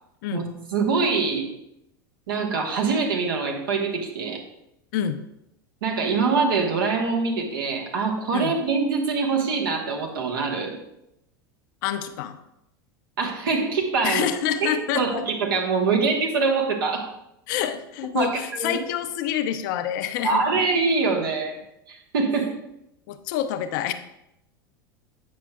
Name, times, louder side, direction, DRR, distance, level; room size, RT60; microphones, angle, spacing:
voice 1, 0.3-1.5 2.3-4.4 5.8-10.8 13.2-17.1 18.1-18.8 20.2-21.6 21.9-22.6, right 4 dB, 70° right, 1 dB, 1.2 m, -24 dB
voice 2, 11.8-12.4 14.0-15.2 17.5-20.4 23.1-23.9, left 10 dB, 60° left, 10 dB, 0.5 m, -27 dB
8.4 x 5.8 x 2.3 m, 0.83 s
hypercardioid pair, 85°, 12 cm